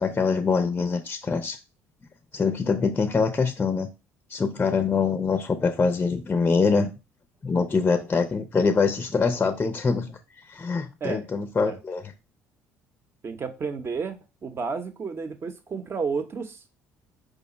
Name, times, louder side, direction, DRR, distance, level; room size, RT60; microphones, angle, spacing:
voice 1, 0.0-1.6 2.3-3.9 4.3-6.9 7.4-10.2 10.5-12.1, left 4 dB, 25° left, 0.5 m, -24 dB
voice 2, 13.2-16.6, right 5 dB, 35° right, 0.8 m, -32 dB
4.9 x 2.1 x 4.2 m
hypercardioid pair, 60°, 7 cm